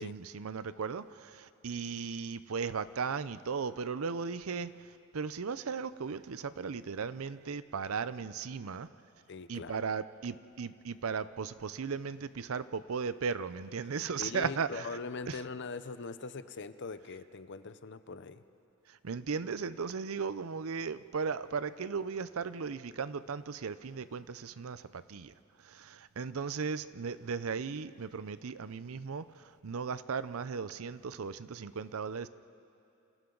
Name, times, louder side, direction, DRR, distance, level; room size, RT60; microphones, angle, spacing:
voice 1, 0.0-4.7 5.1-8.9 9.5-14.9 15.3-15.4 19.0-25.3 25.6-32.3, right 5 dB, 75° right, 14 dB, 0.6 m, -36 dB
voice 2, 9.3-9.8 14.2-18.4, left 4 dB, 55° left, 12 dB, 0.7 m, -41 dB
28.5 x 28.5 x 3.9 m, 2.7 s
head